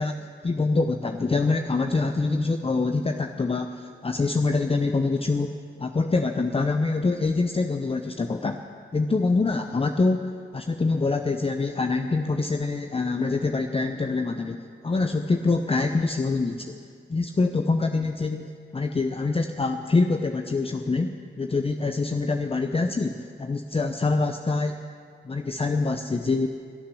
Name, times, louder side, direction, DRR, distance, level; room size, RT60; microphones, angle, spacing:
voice 1, 0.0-8.6 8.9-16.8 17.1-24.8 25.2-26.5, left 3 dB, 30° left, 6 dB, 0.7 m, -25 dB
12.5 x 9.6 x 9.9 m, 2.3 s
cardioid pair, 50°, 20 cm